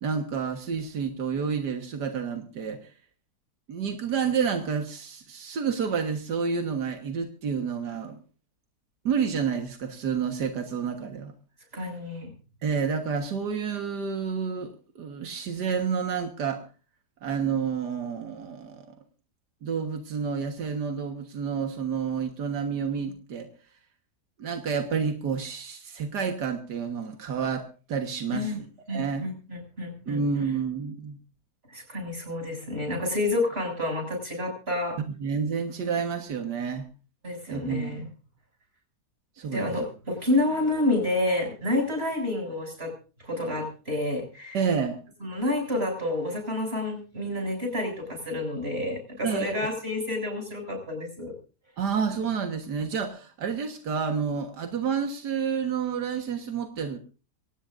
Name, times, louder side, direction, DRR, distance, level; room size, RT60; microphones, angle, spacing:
voice 1, 0.0-2.9 3.7-8.2 9.0-11.3 12.6-14.7 15.0-16.6 17.2-19.0 19.6-23.5 24.4-29.3 30.1-31.2 35.2-36.8 37.5-38.0 39.4-39.7 44.5-45.0 49.2-49.5 51.8-57.0, right 6 dB, 90° right, 5 dB, 2.1 m, -29 dB
voice 2, 11.7-12.3 28.3-28.6 28.9-30.2 31.7-35.0 37.2-38.1 39.5-42.9 43.2-44.6 45.2-51.3, left 2 dB, 35° right, 2 dB, 7.5 m, -29 dB
24.0 x 17.5 x 2.6 m, 0.36 s
omnidirectional pair, 1.7 m